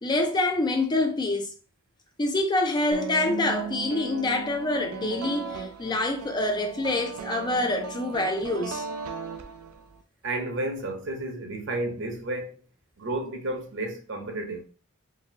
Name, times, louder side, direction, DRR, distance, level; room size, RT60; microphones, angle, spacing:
voice 1, 0.0-1.5 2.2-8.8, left 2 dB, 20° left, 0.4 m, -26 dB
sound 1, 2.9-10.0, right 5 dB, 90° right, 0.4 m, -37 dB
voice 2, 10.2-12.6 13.0-14.7, right 2 dB, 55° right, 0.8 m, -32 dB
4.0 x 2.6 x 2.7 m
head